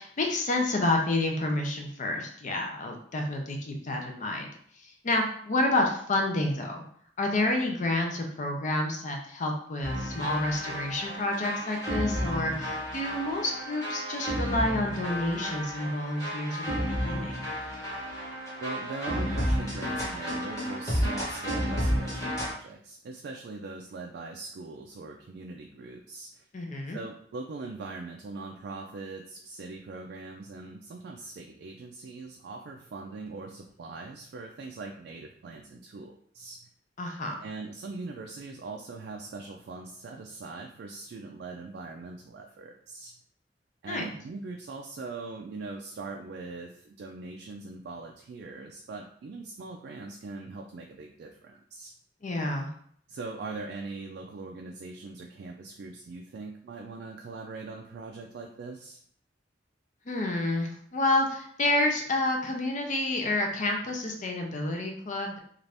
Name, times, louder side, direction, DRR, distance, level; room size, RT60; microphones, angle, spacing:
voice 1, 0.0-4.5 4.8-6.8 7.2-17.4 26.5-27.0 37.0-37.4 43.9-44.1 52.2-52.7 60.1-65.4, left 2 dB, 45° left, 2 dB, 0.5 m, -29 dB
sound 1, 9.8-22.5, equal, 20° left, 1.0 m, -32 dB
voice 2, 18.6-26.5 26.9-36.6 37.4-43.1 43.8-51.9 53.1-59.0, right 3 dB, 60° right, 1 dB, 0.3 m, -41 dB
2.6 x 2.4 x 3.3 m, 0.62 s
head